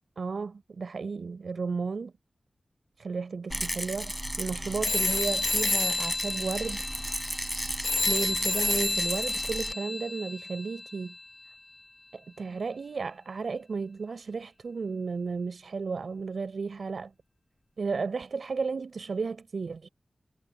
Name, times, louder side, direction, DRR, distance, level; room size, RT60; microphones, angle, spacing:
voice 1, 0.2-2.1 3.0-6.9 8.1-11.2 12.1-17.1 17.8-19.9, right 4 dB, 75° right, 5.8 m, -33 dB
Rattle, 3.5-9.7, equal, 5° right, 4.3 m, -34 dB
sound 1, 4.8-10.9, left 2 dB, 45° left, 0.8 m, -30 dB
wide cardioid pair, 70°, 0 cm